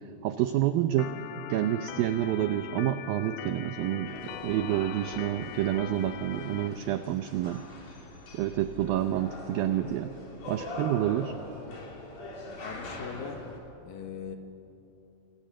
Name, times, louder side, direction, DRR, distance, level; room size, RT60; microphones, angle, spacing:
voice 1, 0.2-1.2 1.5-7.6 8.3-10.1 10.5-11.4, right 12 dB, 85° right, 9 dB, 2.0 m, -28 dB
Organ, 1.0-6.7, left 10 dB, 85° left, 3.4 m, -41 dB
sound 1, 4.0-13.6, left 2 dB, 45° left, 4.6 m, -43 dB
voice 2, 12.5-13.4 13.9-14.4, left 7 dB, 65° left, 5 dB, 2.9 m, -40 dB
28.0 x 25.0 x 7.6 m, 2.8 s
omnidirectional pair, 5.1 m